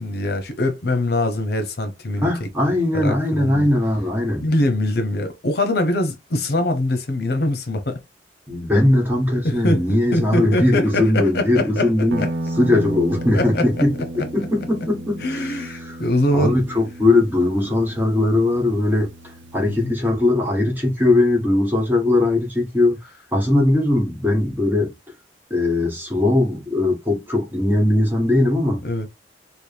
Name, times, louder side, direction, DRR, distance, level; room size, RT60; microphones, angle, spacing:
voice 1, 0.0-2.5 2.9-3.7 4.4-8.0 9.4-11.9 12.2-12.3 13.3-13.8 15.2-16.6 19.7-19.9 28.8-29.1, left 1 dB, 60° left, 0.7 m, -23 dB
voice 2, 2.2-4.5 8.5-12.2 12.6-16.0 16.3-19.1 19.5-24.9 25.5-28.8, left 2 dB, 10° right, 1.2 m, -20 dB
Guitar, 12.1-19.9, right 1 dB, 85° right, 0.7 m, -33 dB
4.4 x 2.1 x 3.3 m
head